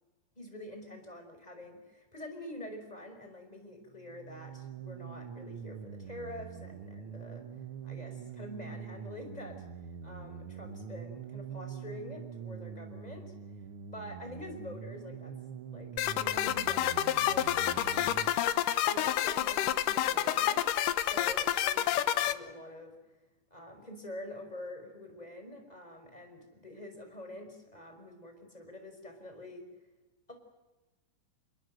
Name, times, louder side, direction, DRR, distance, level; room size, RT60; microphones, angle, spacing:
voice 1, 0.4-7.4 7.8-9.6 10.0-13.3 13.9-15.3 15.7-18.2 18.8-20.6 21.0-22.9 23.5-29.6 30.3-30.4, left 1 dB, 10° left, 4 dB, 5.5 m, -46 dB
sound 1, 3.9-18.3, right 7 dB, 55° right, 1.7 m, -44 dB
sound 2, 16.0-22.3, left 12 dB, 85° left, 2.6 m, -28 dB
29.0 x 22.0 x 7.9 m, 1.2 s
omnidirectional pair, 3.7 m